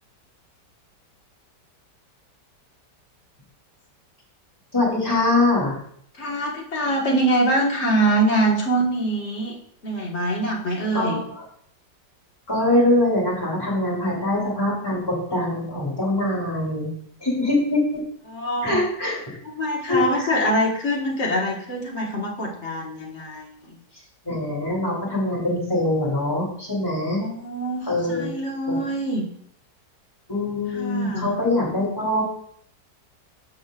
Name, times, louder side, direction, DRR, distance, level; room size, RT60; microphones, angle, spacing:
voice 1, 4.7-5.8 10.9-11.4 12.5-16.9 17.2-18.0 18.6-19.4 19.9-20.3 24.2-27.2 27.9-28.3 28.7-28.8 30.3-32.2, left 1 dB, 15° left, -4 dB, 2.6 m, -23 dB
voice 2, 6.2-9.6 9.8-11.2 18.3-18.8 19.4-23.8 27.0-29.3 30.7-31.4, right 1 dB, 40° left, -2 dB, 1.8 m, -24 dB
13.5 x 5.2 x 2.5 m, 0.66 s
omnidirectional pair, 1.9 m